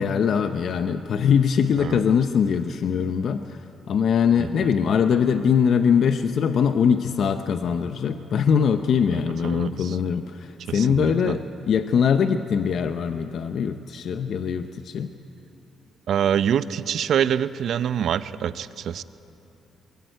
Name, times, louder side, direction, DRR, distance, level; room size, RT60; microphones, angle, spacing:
voice 1, 0.0-3.6 3.9-15.1, left 7 dB, 65° left, 8 dB, 0.8 m, -22 dB
voice 2, 4.4-4.7 9.1-10.0 10.7-11.3 16.1-19.0, right 9 dB, 65° right, 14 dB, 0.7 m, -26 dB
22.5 x 20.5 x 9.2 m, 2.9 s
cardioid pair, 90°, 0 cm